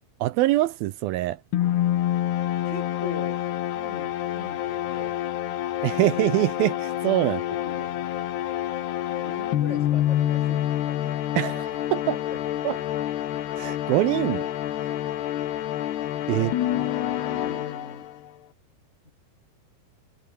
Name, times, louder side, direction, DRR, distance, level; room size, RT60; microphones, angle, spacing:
voice 1, 0.2-1.4 5.8-7.4 11.4-12.2 12.6-12.8 13.6-14.4 16.3-16.5, right 16 dB, 80° right, 2.3 m, -24 dB
sound 1, 1.5-18.3, left 12 dB, 75° left, 3.6 m, -27 dB
voice 2, 2.6-3.4 3.8-5.2 7.2-8.3 9.2-11.2 12.1-13.0 16.3-16.6 17.2-18.1 19.0-19.1, left 2 dB, 15° left, 5.5 m, -42 dB
omnidirectional pair, 4.8 m